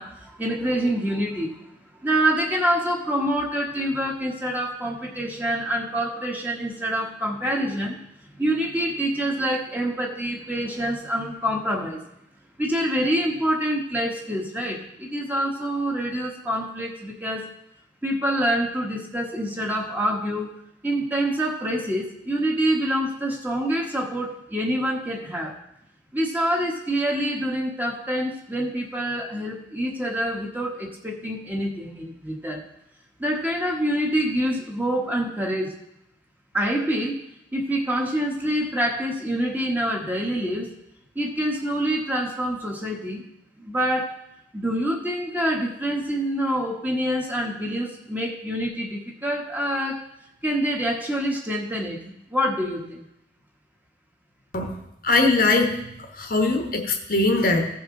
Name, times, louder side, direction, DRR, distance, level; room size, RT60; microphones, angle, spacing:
voice 1, 0.0-1.5 2.0-8.0 8.4-12.0 12.6-17.5 18.0-20.5 20.8-25.6 26.1-32.7 33.2-35.7 36.5-37.2 37.5-40.7 41.1-43.2 43.6-44.2 44.5-50.1 50.4-53.0, equal, 10° right, -1 dB, 1.3 m, -26 dB
voice 2, 55.0-55.8 56.2-57.7, left 3 dB, 50° left, 3 dB, 1.1 m, -21 dB
15.5 x 5.7 x 3.8 m, 0.82 s
head